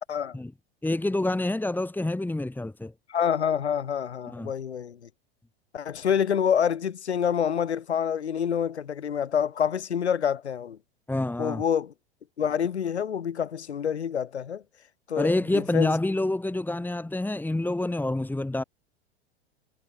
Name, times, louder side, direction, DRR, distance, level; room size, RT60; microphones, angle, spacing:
voice 1, 0.8-2.9 4.3-4.5 11.1-11.6 15.2-18.6, left 2 dB, 5° left, 4.0 m, -27 dB
voice 2, 3.1-5.0 5.7-10.8 11.4-11.9 12.4-14.6 15.1-16.0, left 8 dB, 80° left, 4.5 m, -27 dB
hypercardioid pair, 95°, 33 cm